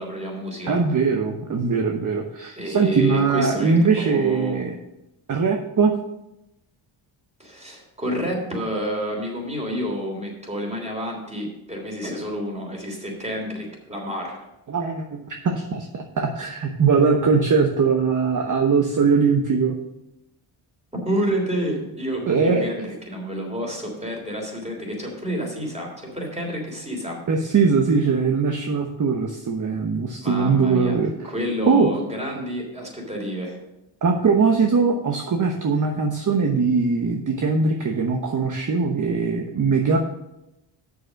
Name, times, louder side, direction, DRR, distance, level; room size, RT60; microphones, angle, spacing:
voice 1, 0.0-0.8 2.5-4.6 7.4-14.4 20.9-27.2 30.2-31.0 31.2-33.6, equal, 15° right, 0 dB, 3.4 m, -29 dB
voice 2, 0.7-4.7 5.3-5.9 14.7-19.8 22.3-22.7 27.3-31.3 31.7-31.9 34.0-40.0, right 5 dB, 40° right, 3 dB, 1.0 m, -21 dB
6.9 x 6.7 x 6.4 m, 0.90 s
cardioid pair, 90°, 49 cm